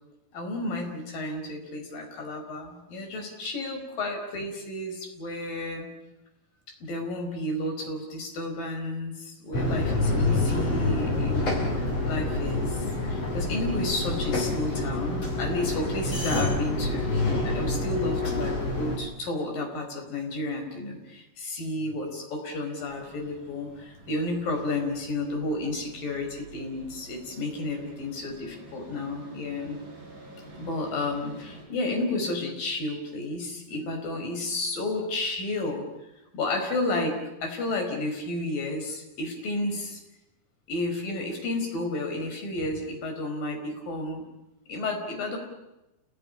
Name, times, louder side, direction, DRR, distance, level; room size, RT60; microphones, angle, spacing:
voice 1, 0.3-5.9 6.8-29.8 30.6-35.8 36.3-40.0 40.7-44.2 44.7-45.4, left 2 dB, 65° left, 3 dB, 6.3 m, -32 dB
sound 1, 9.5-19.0, left 2 dB, 40° left, 6.6 m, -27 dB
sound 2, 22.9-31.7, right 2 dB, 50° right, 9.0 m, -48 dB
29.0 x 18.0 x 9.9 m, 0.95 s
omnidirectional pair, 4.4 m